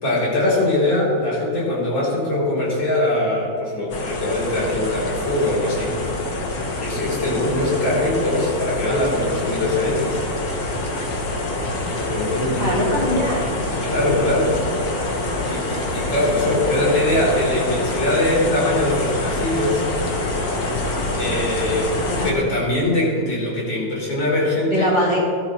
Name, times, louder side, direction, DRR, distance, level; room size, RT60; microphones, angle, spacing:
voice 1, 0.0-6.0 6.8-10.2 12.0-13.1 13.8-14.6 15.5-19.9 21.2-21.9 22.2-24.9, left 1 dB, 65° left, -5 dB, 4.6 m, -22 dB
sound 1, 3.9-22.3, left 2 dB, 50° left, 1.8 m, -26 dB
voice 2, 12.6-13.5 16.2-16.8 22.1-22.4 24.7-25.2, left 1 dB, 20° right, -6 dB, 2.3 m, -23 dB
19.0 x 12.5 x 3.1 m, 2.3 s
omnidirectional pair, 2.2 m